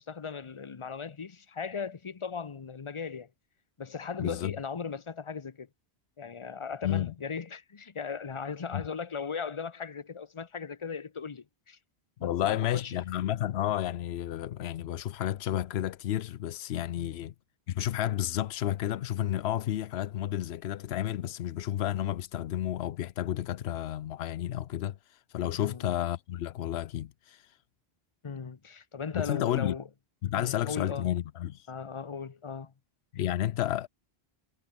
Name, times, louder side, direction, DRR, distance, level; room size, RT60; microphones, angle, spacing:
voice 1, 0.0-3.3 3.8-5.7 6.2-11.8 12.2-12.9 17.0-17.1 25.6-25.8 28.2-29.8 30.4-31.1 31.7-32.7, left 6 dB, 30° left, 0.8 m, -38 dB
voice 2, 4.2-4.5 6.8-7.1 8.7-8.9 12.2-17.3 17.7-25.0 25.3-27.4 29.1-29.7 30.2-31.7 33.1-33.9, left 12 dB, 85° left, 0.9 m, -31 dB
omnidirectional pair, 1.1 m